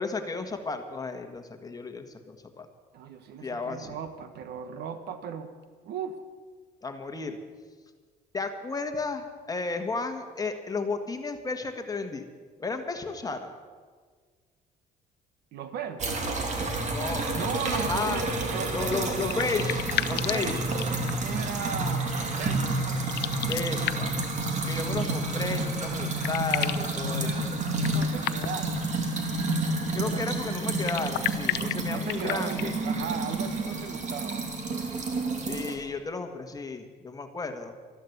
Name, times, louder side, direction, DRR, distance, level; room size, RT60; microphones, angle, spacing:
voice 1, 0.0-2.7 3.4-4.0 6.8-7.4 8.3-12.2 12.6-13.6 16.9-18.2 18.7-20.6 23.0-23.1 23.4-24.2 24.6-27.5 29.9-32.7 35.5-37.7, left 4 dB, 20° left, 5 dB, 1.6 m, -33 dB
voice 2, 2.9-5.5 5.8-6.2 15.5-16.2 17.3-19.7 20.1-20.6 21.1-22.8 27.0-28.9 29.5-30.4 31.9-34.4, right 7 dB, 75° right, 10 dB, 1.2 m, -37 dB
sound 1, 16.0-35.8, right 2 dB, 45° right, 2.6 m, -30 dB
sound 2, 18.9-21.4 23.0-24.3 25.6-25.7 26.0-26.9 27.8-28.7 30.7-32.8, left 15 dB, 75° left, 0.6 m, -33 dB
13.0 x 12.0 x 8.1 m, 1.5 s
cardioid pair, 110°, 17 cm